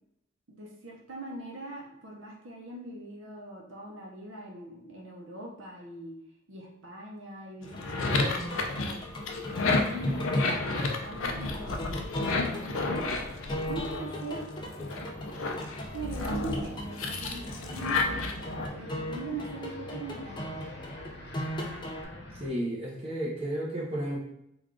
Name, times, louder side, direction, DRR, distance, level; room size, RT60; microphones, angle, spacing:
voice 1, 0.5-6.1 6.5-9.1 9.5-13.1 13.7-14.5 15.4-15.5 15.9-18.5 18.7-20.6, right 2 dB, 70° right, -1 dB, 0.7 m, -42 dB
sound 1, 7.6-14.3 14.8-18.7, left 3 dB, 90° left, 0.5 m, -31 dB
sound 2, 7.6-22.1, equal, 25° left, 0.4 m, -38 dB
sound 3, 12.4-22.5, left 1 dB, 60° left, 0.8 m, -46 dB
voice 2, 22.4-24.2, right 1 dB, 30° right, -4 dB, 0.7 m, -32 dB
3.4 x 2.3 x 3.6 m, 0.79 s
head